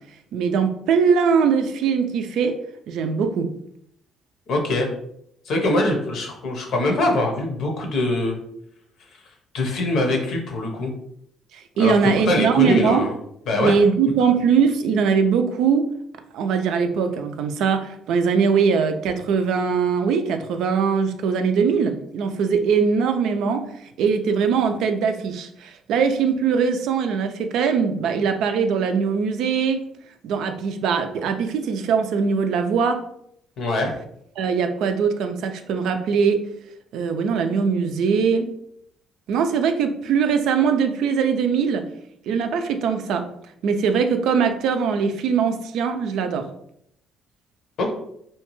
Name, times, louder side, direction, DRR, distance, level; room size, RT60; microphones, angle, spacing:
voice 1, 0.3-2.5 2.9-3.5 11.5-13.1 13.5-15.9 16.3-23.7 24.0-29.8 30.2-33.0 34.4-36.4 36.9-38.5 39.3-41.8 42.3-43.3 43.6-46.5, right 6 dB, 75° right, 7 dB, 0.3 m, -21 dB
voice 2, 4.5-4.9 5.5-8.3 9.5-10.9 11.8-12.0 12.3-13.1 13.5-13.7 33.6-33.9 47.8-47.9, left 2 dB, 70° left, 2 dB, 0.8 m, -22 dB
2.8 x 2.2 x 3.0 m, 0.73 s
supercardioid pair, 75°, 0 cm